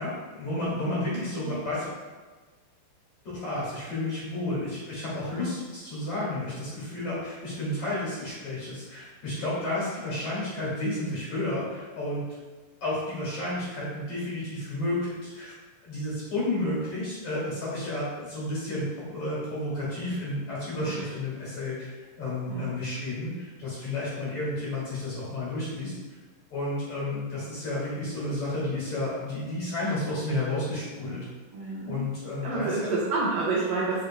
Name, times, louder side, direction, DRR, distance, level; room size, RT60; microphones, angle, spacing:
voice 1, 0.0-1.9 3.4-12.2 12.8-15.5 15.8-21.9 22.2-25.9 26.5-31.2 31.6-32.9, left 1 dB, 45° left, -8 dB, 2.8 m, -31 dB
voice 2, 31.5-32.0 32.4-34.0, right 3 dB, 75° right, -6 dB, 2.0 m, -29 dB
9.7 x 5.6 x 2.3 m, 1.3 s
omnidirectional pair, 5.3 m